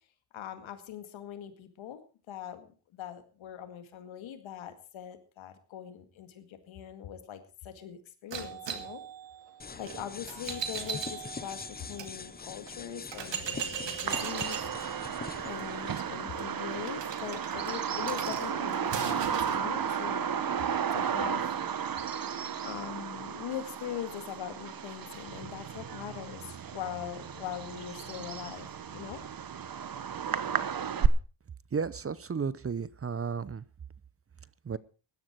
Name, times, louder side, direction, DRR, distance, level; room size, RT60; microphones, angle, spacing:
voice 1, 0.3-9.0 9.8-14.6 15.4-20.3 20.9-21.6 22.6-29.2, left 10 dB, 85° left, 9 dB, 2.1 m, -42 dB
sound 1, 8.3-12.1 12.7-12.8 13.1-19.6, right 7 dB, 65° right, 2.4 m, -39 dB
sound 2, 9.6-16.0, left 5 dB, 20° left, 0.6 m, -43 dB
Bird vocalization bird call bird song, 14.1-31.1, right 8 dB, 50° right, 1.2 m, -33 dB
voice 2, 31.7-33.6 34.7-34.8, right 5 dB, 30° right, 19 dB, 0.8 m, -33 dB
16.5 x 12.0 x 4.6 m, 0.35 s
cardioid pair, 70°, 46 cm